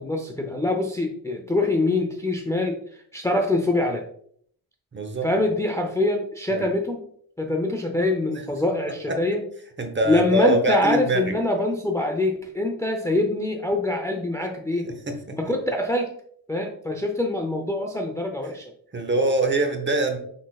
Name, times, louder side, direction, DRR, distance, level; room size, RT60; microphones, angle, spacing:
voice 1, 0.0-4.0 5.2-7.0 7.4-9.4 10.1-14.9 15.3-16.1 16.5-18.7, left 1 dB, 10° left, 2 dB, 0.6 m, -24 dB
voice 2, 4.9-5.3 6.5-6.7 9.1-9.2 9.8-11.3 14.8-15.4 18.9-20.2, right 1 dB, 30° right, 5 dB, 0.9 m, -24 dB
6.1 x 3.7 x 2.3 m, 0.63 s
cardioid pair, 85°, 39 cm